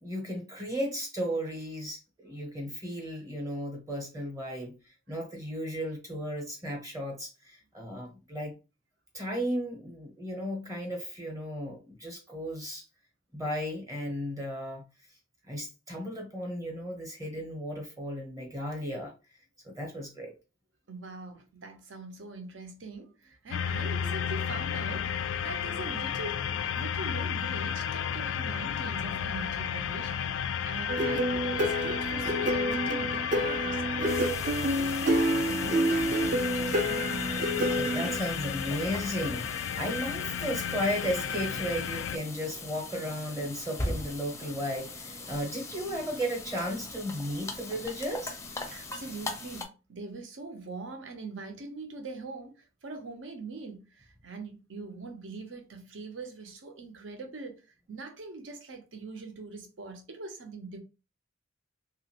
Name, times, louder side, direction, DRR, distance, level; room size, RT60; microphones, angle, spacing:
voice 1, 0.0-8.5 9.1-12.8 13.3-14.8 15.5-19.1 19.6-20.3 37.7-48.3, equal, 15° right, 0.7 m, -35 dB
voice 2, 20.9-26.4 26.8-30.1 30.4-37.3 48.7-57.6 57.9-60.8, right 3 dB, 75° right, 0.7 m, -43 dB
sound 1, 23.5-42.2, left 8 dB, 75° left, 0.3 m, -33 dB
sound 2, 30.9-38.2, right 1 dB, 40° right, 0.4 m, -29 dB
sound 3, 34.1-49.6, left 2 dB, 15° left, 0.5 m, -41 dB
2.9 x 2.5 x 2.8 m
head